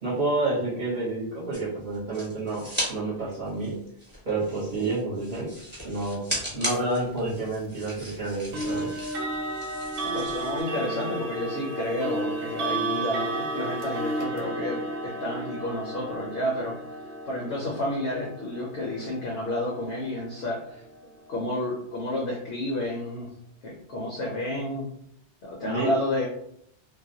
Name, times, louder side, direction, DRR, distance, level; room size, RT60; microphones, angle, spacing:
voice 1, 0.0-3.8 4.3-5.5 5.8-6.2 6.5-8.9 25.6-25.9, right 2 dB, 50° right, -9 dB, 0.9 m, -29 dB
sound 1, 1.5-2.9 3.2-10.6, equal, 10° right, 0.9 m, -37 dB
sound 2, 6.6-6.9 8.5-21.4, right 2 dB, 85° right, 0.9 m, -33 dB
voice 2, 10.0-16.8 17.3-20.8 21.3-23.3 23.6-24.9 25.4-26.3, left 1 dB, 70° left, -2 dB, 0.8 m, -30 dB
2.3 x 2.0 x 2.6 m, 0.69 s
omnidirectional pair, 1.1 m